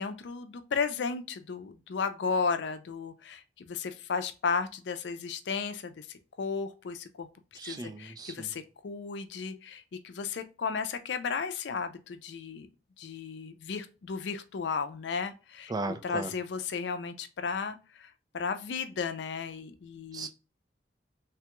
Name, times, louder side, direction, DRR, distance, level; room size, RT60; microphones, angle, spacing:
voice 1, 0.0-7.3 7.6-12.7 13.0-15.7 16.0-20.3, left 5 dB, 80° left, 0.4 m, -34 dB
voice 2, 7.5-8.5 15.7-16.4 20.1-20.3, right 2 dB, 20° right, 0.3 m, -37 dB
3.3 x 2.2 x 2.9 m
head